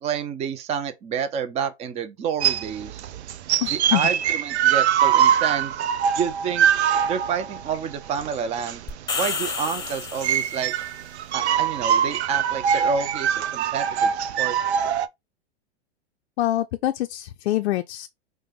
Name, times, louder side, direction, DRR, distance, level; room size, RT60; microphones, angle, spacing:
voice 1, 0.0-3.1 3.7-5.8 6.2-6.7 7.1-8.8 9.1-10.7 11.3-14.6, right 7 dB, 20° right, 0.5 m, -29 dB
sound 1, 2.4-15.1, right 9 dB, 75° right, 0.5 m, -23 dB
voice 2, 3.6-4.0 16.4-18.1, left 14 dB, 70° left, 0.5 m, -25 dB
sound 2, 8.9-10.8, left 5 dB, 10° left, 0.8 m, -30 dB
5.2 x 2.1 x 3.5 m
hypercardioid pair, 110°, 34 cm